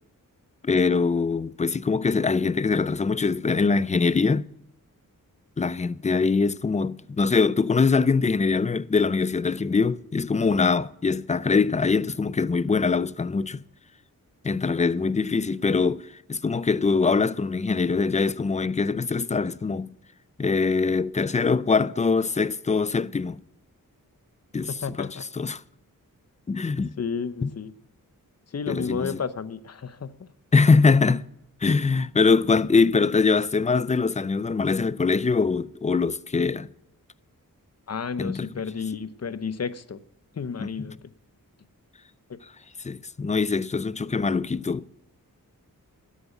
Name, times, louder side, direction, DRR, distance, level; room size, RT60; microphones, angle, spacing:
voice 1, 0.6-4.5 5.6-13.6 14.4-19.9 20.4-23.4 24.5-24.7 25.0-25.1 25.4-25.6 26.5-27.0 27.4-27.5 28.7-29.2 30.5-31.2 31.6-36.7 38.2-38.5 40.6-40.7 42.8-44.9, left 4 dB, 20° left, 0.4 m, -23 dB
voice 2, 24.8-25.3 27.0-27.7 28.5-30.3 37.9-40.0 40.3-41.1 42.3-42.4, left 6 dB, 45° left, 0.9 m, -32 dB
12.5 x 8.4 x 8.0 m
wide cardioid pair, 85°, 34 cm